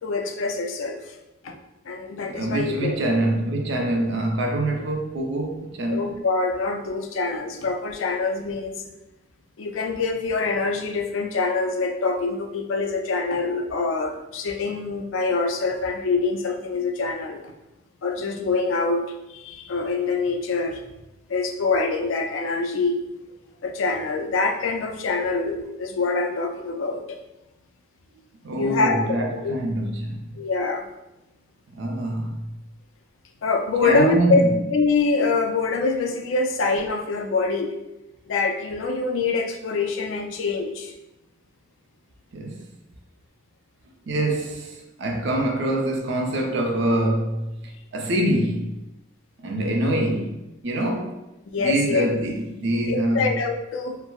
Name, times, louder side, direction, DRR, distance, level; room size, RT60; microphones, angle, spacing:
voice 1, 0.0-1.2 1.4-1.6 1.9-2.9 5.9-8.9 9.6-17.5 18.0-19.0 19.3-20.8 21.3-23.0 23.6-27.2 28.6-29.0 29.4-29.5 30.4-30.9 33.4-34.4 34.7-37.7 38.3-40.9 51.5-52.1 52.9-54.0, left 4 dB, 85° left, 0.4 m, -25 dB
voice 2, 2.3-6.1 28.4-30.3 31.7-32.4 33.8-34.5 42.3-42.7 44.1-47.5 47.9-48.8 49.4-51.2 51.6-53.3, right 1 dB, 65° right, 0.6 m, -25 dB
4.4 x 2.0 x 2.3 m
head